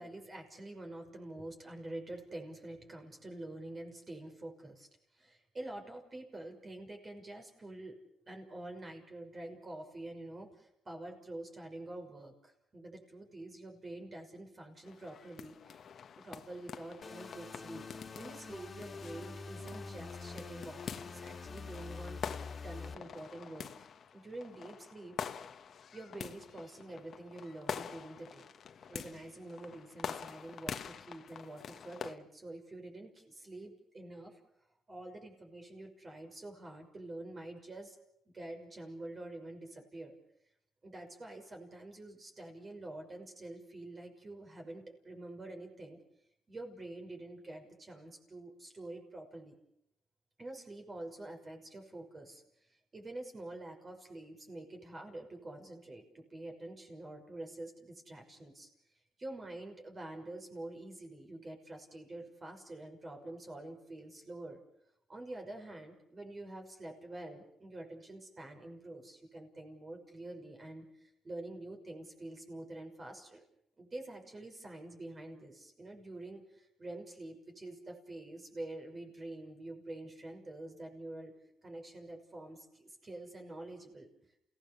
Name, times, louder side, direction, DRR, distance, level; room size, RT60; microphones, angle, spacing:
voice 1, 0.0-4.9 5.1-8.0 8.3-15.9 16.2-17.9 18.1-23.9 24.1-25.2 25.9-28.5 28.9-34.4 34.9-38.0 38.3-40.2 40.8-46.0 46.5-49.6 50.4-58.7 59.2-64.6 65.1-73.4 73.8-81.3 81.6-84.1, right 2 dB, 30° right, 3 dB, 6.0 m, -47 dB
sound 1, 14.8-32.2, left 7 dB, 55° left, 1.4 m, -46 dB
sound 2, 17.0-22.9, left 4 dB, 35° left, 2.5 m, -46 dB
29.0 x 17.5 x 7.1 m, 0.77 s
cardioid pair, 90°, 0 cm